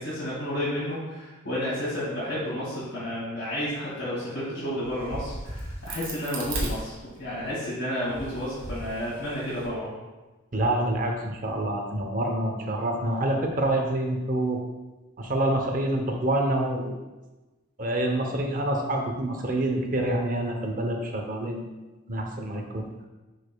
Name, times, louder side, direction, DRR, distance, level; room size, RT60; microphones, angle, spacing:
voice 1, 0.0-9.9, equal, 50° left, -10 dB, 2.2 m, -31 dB
Crack, 4.8-7.5 8.0-9.7, right 1 dB, 65° right, 1.8 m, -36 dB
voice 2, 10.5-14.6 15.2-16.9 17.8-21.7 22.1-22.9, right 1 dB, 40° right, 3 dB, 0.8 m, -27 dB
11.0 x 5.0 x 2.3 m, 1.2 s
head